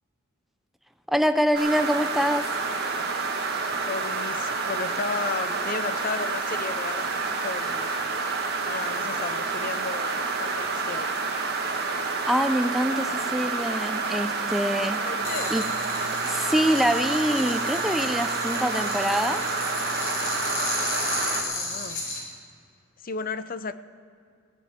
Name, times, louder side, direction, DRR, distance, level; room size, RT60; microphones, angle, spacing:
voice 1, 1.1-2.4 12.2-15.0 15.5-15.6 16.2-19.4, equal, ahead, 8 dB, 0.5 m, -25 dB
sound 1, 1.5-21.4, right 4 dB, 55° right, 1.9 m, -28 dB
voice 2, 3.9-8.0 8.6-11.1 15.0-15.6 21.5-22.0 23.0-23.7, left 4 dB, 45° left, 13 dB, 0.6 m, -34 dB
sound 2, 15.2-22.2, left 2 dB, 90° left, 5.0 m, -33 dB
17.0 x 7.6 x 9.3 m, 2.3 s
head